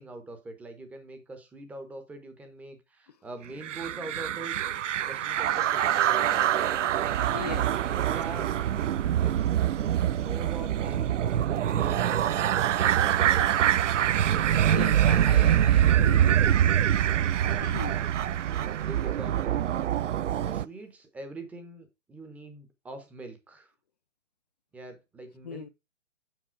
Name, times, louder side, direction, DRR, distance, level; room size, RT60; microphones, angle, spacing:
voice 1, 0.0-4.6 5.0-7.0 7.5-9.5 9.8-11.2 11.6-12.7 13.0-14.4 18.8-19.6 20.3-23.7 24.7-25.7, right 2 dB, 5° right, 0.7 m, -44 dB
sound 1, 3.6-20.6, right 10 dB, 70° right, 0.5 m, -25 dB
voice 2, 7.3-7.7 14.6-16.7 17.5-18.0 25.4-25.7, left 7 dB, 35° left, 0.4 m, -38 dB
7.6 x 5.4 x 4.5 m
hypercardioid pair, 140°, 39 cm